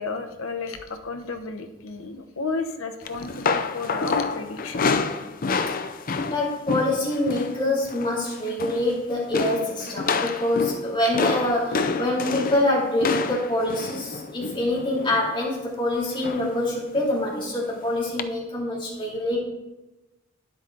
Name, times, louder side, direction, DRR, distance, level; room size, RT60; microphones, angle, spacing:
voice 1, 0.0-4.9, left 4 dB, 75° left, 6 dB, 0.9 m, -32 dB
sound 1, 3.0-7.6 7.8-8.2 8.5-9.0 9.3-15.4 16.2-16.6 16.9-17.1 18.2-18.3, left 4 dB, 40° left, 0.5 m, -28 dB
voice 2, 6.3-19.4, left 1 dB, 25° left, -5 dB, 2.7 m, -25 dB
9.7 x 8.0 x 3.9 m, 1.0 s
head